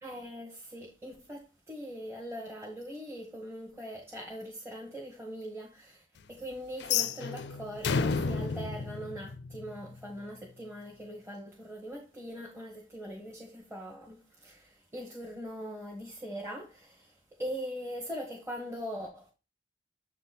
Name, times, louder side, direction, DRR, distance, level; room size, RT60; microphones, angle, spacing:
voice 1, 0.0-17.1 17.4-19.3, equal, 15° right, 1.3 m, -41 dB
sound 1, 6.8-9.9, left 5 dB, 65° left, 0.5 m, -31 dB
7.7 x 4.0 x 4.0 m
head